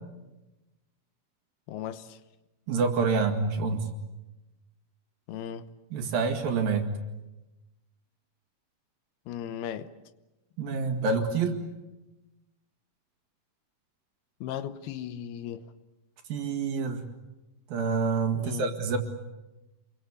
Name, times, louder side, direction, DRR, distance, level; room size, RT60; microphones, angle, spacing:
voice 1, 1.7-2.2 5.3-5.7 9.3-9.9 14.4-15.6 18.3-18.7, left 10 dB, 80° left, 3.0 m, -36 dB
voice 2, 2.7-3.9 5.9-6.9 10.6-11.6 16.3-17.0 17.7-19.0, right 4 dB, 65° right, 3.8 m, -27 dB
28.0 x 23.0 x 8.3 m
omnidirectional pair, 4.5 m